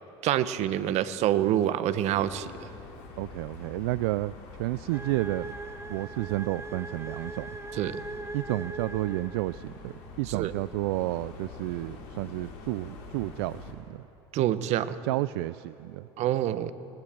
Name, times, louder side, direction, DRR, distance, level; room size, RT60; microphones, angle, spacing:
voice 1, 0.2-2.5 7.8-8.0 10.3-10.5 14.3-14.9 16.2-16.7, right 12 dB, 55° right, 14 dB, 1.1 m, -26 dB
sound 1, 2.0-13.7, left 4 dB, 75° left, 4.1 m, -45 dB
voice 2, 3.2-4.3 4.6-5.5 5.9-7.6 8.3-14.1 15.0-16.1, right 20 dB, 75° right, 17 dB, 0.4 m, -31 dB
sound 2, 4.9-9.8, right 3 dB, 20° right, 2.2 m, -40 dB
26.0 x 19.0 x 7.7 m, 3.0 s
hypercardioid pair, 80°, 13 cm